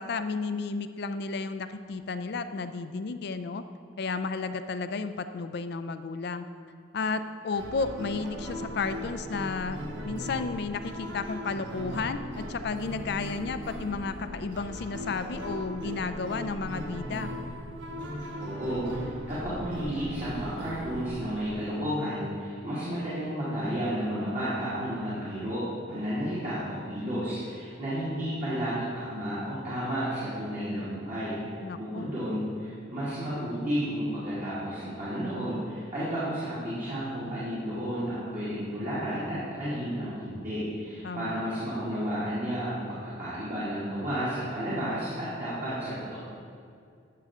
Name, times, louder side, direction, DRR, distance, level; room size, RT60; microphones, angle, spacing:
voice 1, 0.0-3.6 4.0-6.5 6.9-9.8 10.0-17.3 31.6-32.1 41.0-41.4, left 4 dB, 60° left, 10 dB, 0.4 m, -32 dB
sound 1, 7.5-21.5, equal, 80° right, 1.0 m, -38 dB
voice 2, 18.4-46.2, equal, 45° right, -11 dB, 2.3 m, -32 dB
11.0 x 6.7 x 3.7 m, 2.3 s
head